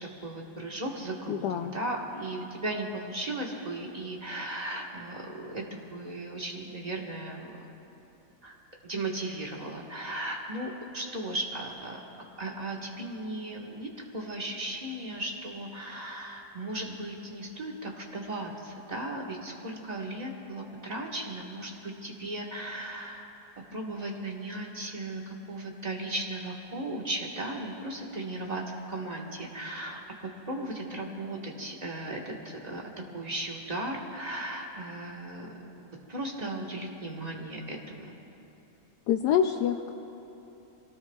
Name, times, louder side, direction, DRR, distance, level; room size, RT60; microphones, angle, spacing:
voice 1, 0.0-7.6 8.4-8.5 8.8-12.0 12.4-23.3 23.7-28.6 28.9-30.0 30.4-32.8 33.1-35.5 36.1-38.1, right 1 dB, 25° right, -1 dB, 1.5 m, -36 dB
voice 2, 1.3-1.8 39.1-39.9, left 9 dB, 75° left, 6 dB, 1.1 m, -26 dB
27.5 x 18.5 x 2.4 m, 3.0 s
omnidirectional pair, 1.9 m